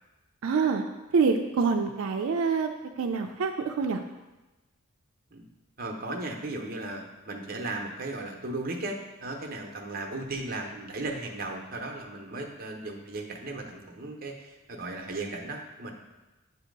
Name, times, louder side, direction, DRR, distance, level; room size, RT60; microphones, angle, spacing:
voice 1, 0.4-0.8 1.1-2.7 3.0-4.0, right 5 dB, 80° right, 4 dB, 0.4 m, -26 dB
voice 2, 5.8-16.0, right 2 dB, 40° right, 2 dB, 0.7 m, -36 dB
8.0 x 2.8 x 5.2 m, 1.1 s
head